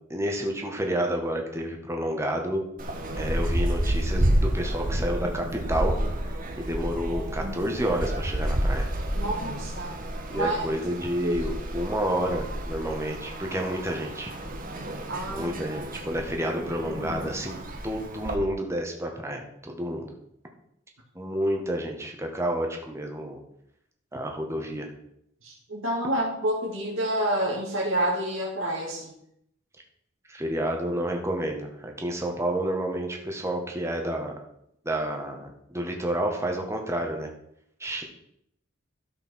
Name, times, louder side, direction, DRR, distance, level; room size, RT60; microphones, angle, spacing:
voice 1, 0.1-2.6 3.2-5.9 6.6-8.9 10.3-14.3 15.3-17.6 17.8-20.1 21.2-23.4 24.1-24.9 30.3-34.3 34.9-37.3 37.8-38.0, right 1 dB, 15° right, 2 dB, 1.8 m, -29 dB
sound 1, 2.8-18.4, right 1 dB, 45° right, 1.5 m, -30 dB
voice 2, 9.1-10.0 10.3-10.6 11.2-11.5 15.1-15.5 25.4-29.1, right 1 dB, 90° right, -4 dB, 2.4 m, -28 dB
12.5 x 5.4 x 6.6 m, 0.73 s
head